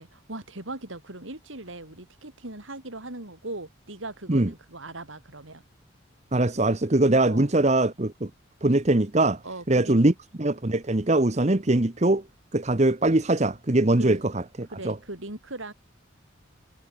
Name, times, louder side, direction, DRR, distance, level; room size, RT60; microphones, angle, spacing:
voice 1, 0.0-5.6 7.2-7.5 9.4-10.1 14.0-14.2 14.7-15.7, right 2 dB, 75° right, 4.3 m, -39 dB
voice 2, 6.3-8.3 8.6-9.4 9.7-10.1 10.4-12.2 12.5-15.0, right 2 dB, 35° right, 1.0 m, -22 dB
head